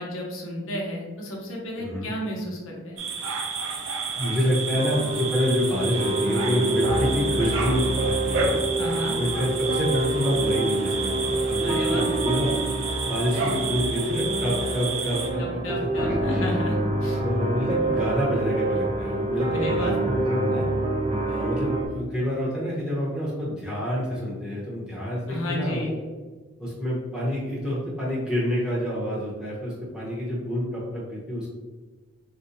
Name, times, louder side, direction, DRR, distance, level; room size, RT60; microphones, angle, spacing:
voice 1, 0.0-3.0 8.8-9.2 11.6-12.1 15.4-17.2 19.5-19.9 25.3-26.0, left 1 dB, 85° left, -2 dB, 0.8 m, -32 dB
voice 2, 1.8-2.1 4.2-8.6 9.2-12.6 13.0-15.6 16.0-16.5 17.2-20.7 21.3-25.9 26.6-31.5, equal, 5° right, -7 dB, 0.8 m, -28 dB
sound 1, 3.0-15.3, right 4 dB, 85° right, 0.5 m, -31 dB
sound 2, 4.7-21.9, right 2 dB, 25° right, 0.3 m, -27 dB
3.7 x 2.2 x 2.7 m, 1.3 s
head